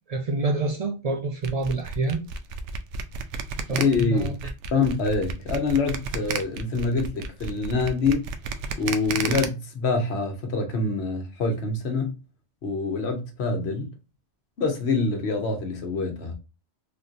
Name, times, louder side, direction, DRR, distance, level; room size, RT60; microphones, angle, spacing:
voice 1, 0.1-2.2 3.7-4.3, right 3 dB, 55° right, 0.4 m, -27 dB
sound 1, 1.4-9.5, right 5 dB, 80° right, 0.9 m, -32 dB
voice 2, 3.7-4.4 4.7-8.3 8.8-12.2 12.6-13.9 14.6-16.3, left 4 dB, 70° left, 1.1 m, -25 dB
3.5 x 2.6 x 2.5 m
omnidirectional pair, 1.2 m